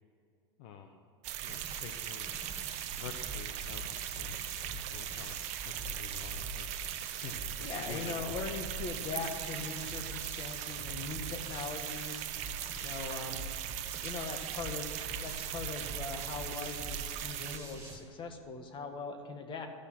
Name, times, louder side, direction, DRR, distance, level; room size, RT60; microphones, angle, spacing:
voice 1, 0.6-1.0 1.4-2.5 3.0-5.4 5.6-6.7 7.2-8.4, left 7 dB, 60° left, 5 dB, 0.9 m, -48 dB
sound 1, 1.2-17.6, right 12 dB, 50° right, 0.8 m, -39 dB
sound 2, 1.5-18.0, right 1 dB, 20° right, 2.9 m, -46 dB
voice 2, 7.6-12.2 12.8-13.4 14.0-19.7, left 4 dB, 30° left, 5 dB, 1.7 m, -41 dB
13.5 x 6.6 x 7.7 m, 2.5 s
hypercardioid pair, 105°, 15 cm